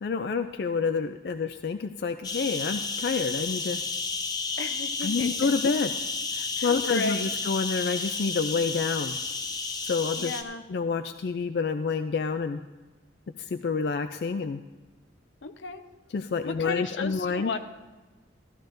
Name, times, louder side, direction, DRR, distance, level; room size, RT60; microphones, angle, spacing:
voice 1, 0.0-3.8 5.0-5.9 6.3-9.2 9.8-10.3 10.7-12.6 13.4-14.6 16.1-17.5, left 5 dB, 60° left, 8 dB, 0.4 m, -28 dB
sound 1, 2.2-10.4, left 4 dB, 20° left, 0.6 m, -32 dB
voice 2, 4.6-5.5 6.6-7.4 10.2-10.6 15.4-15.8 16.4-17.6, left 3 dB, 85° left, 7 dB, 0.7 m, -34 dB
14.5 x 13.5 x 2.6 m, 1.2 s
head